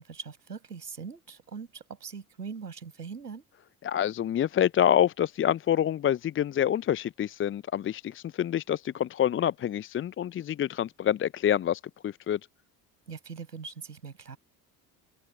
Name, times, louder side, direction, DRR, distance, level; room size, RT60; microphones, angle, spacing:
voice 1, 0.0-3.4 13.1-14.4, right 5 dB, 80° right, 7.1 m, -41 dB
voice 2, 3.8-12.4, left 10 dB, 25° left, 0.6 m, -27 dB
figure-of-eight pair, 50°, 47 cm